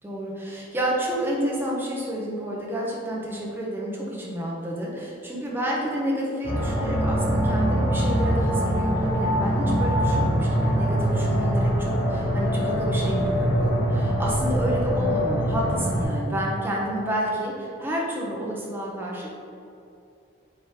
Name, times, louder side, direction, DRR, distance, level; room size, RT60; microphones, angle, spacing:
voice 1, 0.0-19.4, right 1 dB, 10° right, -4 dB, 0.7 m, -30 dB
sound 1, 6.4-16.1, equal, 55° left, 1.1 m, -23 dB
4.9 x 3.5 x 2.9 m, 2.6 s
head